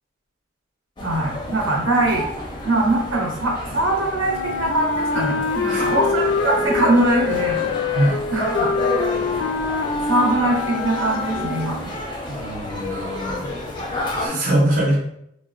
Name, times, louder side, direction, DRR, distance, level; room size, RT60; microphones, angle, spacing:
sound 1, 1.0-14.3, left 1 dB, 25° left, 0.5 m, -30 dB
voice 1, 1.0-2.3 2.6-7.6 8.3-8.7 10.1-11.8, right 2 dB, 85° right, -1 dB, 0.7 m, -22 dB
Wind instrument woodwind instrument, 4.2-12.0, left 4 dB, 85° left, 0.4 m, -25 dB
voice 2, 5.7-6.1 7.9-8.2 12.3-13.5 14.1-15.0, right 1 dB, 45° right, -3 dB, 0.6 m, -22 dB
3.7 x 2.1 x 2.4 m, 0.77 s
head